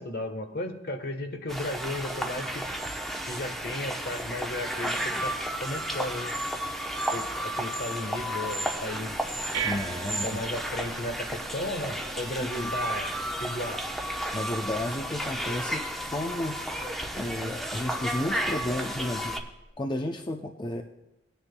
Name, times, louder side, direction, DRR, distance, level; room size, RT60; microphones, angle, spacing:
voice 1, 0.0-2.6 3.2-6.3 7.1-9.2 10.2-13.1 13.4-13.8, left 1 dB, 60° left, 6 dB, 1.2 m, -35 dB
sound 1, 1.5-19.4, right 1 dB, ahead, 0.8 m, -33 dB
sound 2, 9.1-19.7, right 6 dB, 75° right, 1.2 m, -43 dB
voice 2, 9.6-10.5 12.6-12.7 14.3-16.6 17.1-19.4 19.8-20.8, left 1 dB, 25° left, 4 dB, 0.5 m, -32 dB
19.5 x 10.0 x 2.2 m, 0.99 s
head